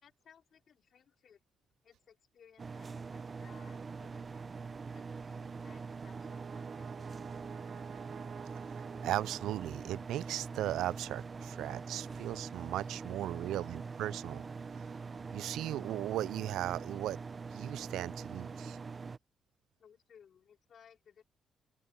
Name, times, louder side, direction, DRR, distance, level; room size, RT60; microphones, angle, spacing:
voice 1, 0.0-1.4 1.8-4.4 4.9-7.4 19.8-21.2, left 7 dB, 60° left, 3.1 m, -62 dB
sound 1, 2.6-19.2, right 4 dB, 35° right, 0.9 m, -43 dB
Brass instrument, 5.8-10.2, right 8 dB, 65° right, 1.9 m, -52 dB
voice 2, 9.0-14.4 15.3-17.2 17.5-18.8, right 13 dB, 85° right, 0.4 m, -37 dB
open air
cardioid pair, 90°, 0 cm